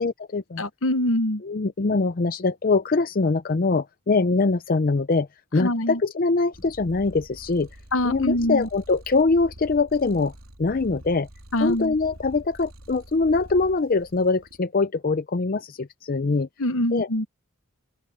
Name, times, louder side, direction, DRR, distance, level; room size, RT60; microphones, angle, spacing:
voice 1, 0.0-0.6 1.4-5.3 5.5-7.7 8.0-10.3 10.6-11.3 11.6-16.5 16.9-17.1, left 3 dB, 40° left, 0.5 m, -23 dB
voice 2, 0.6-1.4 5.6-6.0 7.9-8.7 11.5-11.9 16.6-17.3, left 1 dB, 65° left, 1.1 m, -24 dB
Purr, 6.5-14.6, equal, 85° right, 3.3 m, -46 dB
open air
head